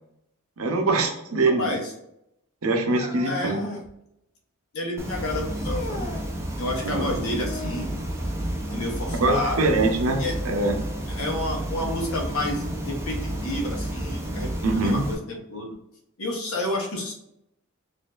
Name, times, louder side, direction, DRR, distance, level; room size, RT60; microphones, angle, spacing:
voice 1, 0.6-1.7 2.6-3.6 6.8-7.1 9.2-10.8 14.6-15.0, right 2 dB, 75° right, 3 dB, 0.7 m, -23 dB
voice 2, 1.4-1.9 3.2-3.8 4.7-6.1 6.6-7.9 8.7-9.7 10.2-10.4 11.1-15.8 16.2-17.1, left 1 dB, 70° left, 0 dB, 1.0 m, -30 dB
sound 1, 2.9-3.9 5.5-6.3 7.3-8.0 10.0-10.2 11.0-11.1 12.1-12.2, left 2 dB, 35° left, 0.6 m, -36 dB
sound 2, 5.0-15.1, right 1 dB, 10° right, 0.4 m, -31 dB
4.3 x 2.6 x 2.4 m, 0.80 s
head